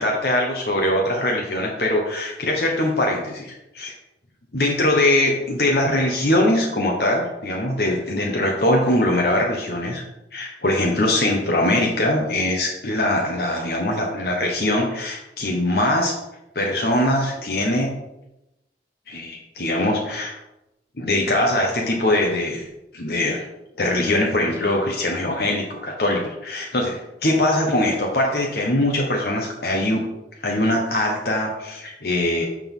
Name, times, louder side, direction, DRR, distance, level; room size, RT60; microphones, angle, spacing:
voice 1, 0.0-3.9 4.5-10.0 10.3-16.1 16.5-18.0 19.1-20.4 21.0-22.7 22.9-23.4 23.8-30.0 30.4-32.5, left 1 dB, 60° left, -1 dB, 1.2 m, -22 dB
6.8 x 6.0 x 5.5 m, 0.92 s
head